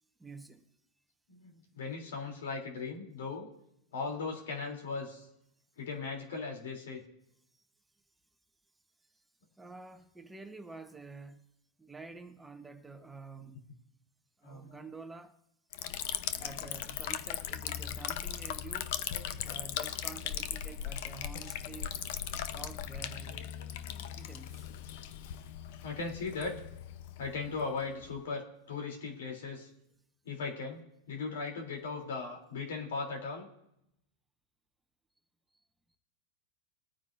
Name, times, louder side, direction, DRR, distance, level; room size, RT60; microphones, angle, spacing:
voice 1, 0.2-0.6 9.1-9.2 9.6-11.4 11.8-13.6 14.4-15.4 16.4-19.0 19.4-22.0 22.3-23.5 24.1-24.7, right 4 dB, 5° right, 1.0 m, -49 dB
voice 2, 1.3-3.5 3.9-5.3 5.8-7.0 14.4-14.9 19.1-19.6 23.3-23.5 23.8-24.1 25.8-26.6 27.2-29.7 30.2-30.8 31.1-33.5, left 4 dB, 80° left, 3.1 m, -38 dB
Liquid, 15.7-28.2, left 10 dB, 60° left, 0.7 m, -39 dB
22.0 x 9.3 x 2.6 m
supercardioid pair, 135°, 0 cm